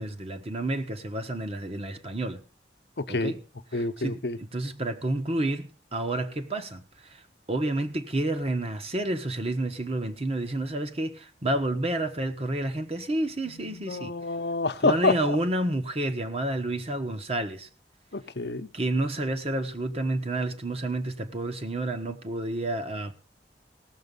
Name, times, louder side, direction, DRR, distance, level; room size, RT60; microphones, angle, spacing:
voice 1, 0.0-2.4 3.1-3.4 3.7-6.8 7.1-7.2 7.5-14.1 14.8-17.7 18.7-23.1, right 1 dB, 35° right, 1.3 m, -30 dB
voice 2, 3.0-3.3 3.7-4.4 13.5-15.4 18.1-18.7, left 3 dB, 65° left, 0.9 m, -28 dB
17.0 x 7.2 x 5.4 m
head